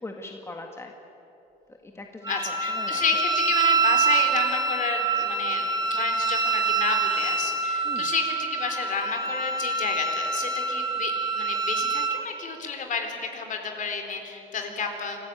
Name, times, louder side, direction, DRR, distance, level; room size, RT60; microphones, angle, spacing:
voice 1, 0.0-0.9 1.7-3.0 7.8-8.1, left 2 dB, 15° left, 3 dB, 1.7 m, -40 dB
Wind instrument woodwind instrument, 2.2-12.2, right 4 dB, 20° right, 1.9 m, -26 dB
voice 2, 2.3-15.2, left 5 dB, 50° left, 4 dB, 3.8 m, -31 dB
26.0 x 14.5 x 9.0 m, 3.0 s
cardioid pair, 110°, 17 cm